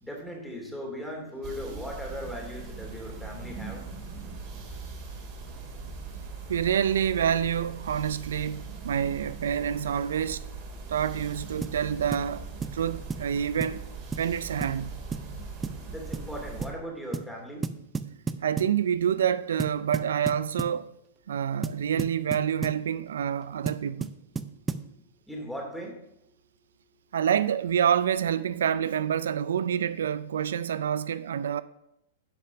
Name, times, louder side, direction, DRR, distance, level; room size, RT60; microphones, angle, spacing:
voice 1, 0.0-3.8 15.9-17.6 25.3-26.0, equal, ahead, 2.6 m, -38 dB
sound 1, 1.4-16.7, right 4 dB, 35° right, 3.0 m, -40 dB
voice 2, 6.5-10.4 10.9-12.5 12.7-13.8 14.2-15.0 18.4-20.9 21.3-24.1 27.1-31.6, right 8 dB, 85° right, 0.4 m, -27 dB
sound 2, 11.6-11.8 12.1-12.3 12.6-12.8 13.1-13.3 13.6-13.8 14.1-14.3 14.6-14.8 15.1-15.3 15.6-15.8 16.1-16.3 16.6-16.8 17.1-17.3 17.6-18.8 19.6-20.8 21.6-22.8 23.7-24.9, right 5 dB, 15° right, 0.5 m, -33 dB
10.5 x 5.1 x 5.7 m
hypercardioid pair, 130°, 0 cm